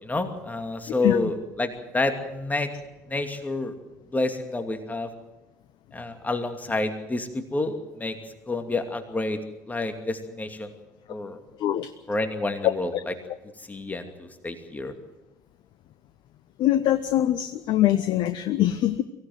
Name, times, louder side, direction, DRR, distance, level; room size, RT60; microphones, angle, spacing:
voice 1, 0.0-2.7 3.1-3.7 4.1-5.1 5.9-8.2 8.5-9.4 9.7-10.7 11.1-11.4 12.1-13.1 13.7-14.9, left 2 dB, 15° left, 6 dB, 2.6 m, -29 dB
voice 2, 11.6-11.9 16.6-19.0, left 13 dB, 50° left, 12 dB, 0.9 m, -23 dB
24.0 x 17.0 x 7.8 m, 0.99 s
figure-of-eight pair, 55°, 10 cm